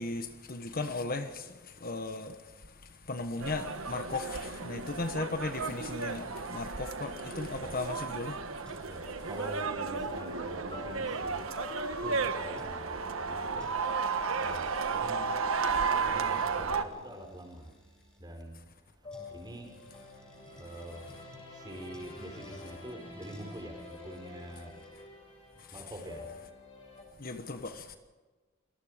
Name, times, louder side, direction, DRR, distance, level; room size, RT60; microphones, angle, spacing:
voice 1, 0.0-8.4 8.7-8.9 25.6-25.7 27.2-28.0, left 3 dB, 45° left, 1.3 m, -37 dB
sound 1, 3.4-16.8, right 5 dB, 75° right, 1.5 m, -33 dB
sound 2, 8.6-12.7 13.2-13.3 13.6-18.2 19.1-21.4 21.9-22.7 23.2-24.9, right 1 dB, 5° left, 7.6 m, -59 dB
sound 3, 8.9-17.1 19.0-27.0, left 2 dB, 30° left, 6.4 m, -49 dB
voice 2, 8.9-11.5 12.0-13.7 14.4-15.5 15.9-17.7 18.2-18.5 19.3-19.7 20.5-21.1 21.5-24.8 25.7-26.3, right 1 dB, 20° right, 5.1 m, -45 dB
27.0 x 19.5 x 5.1 m
head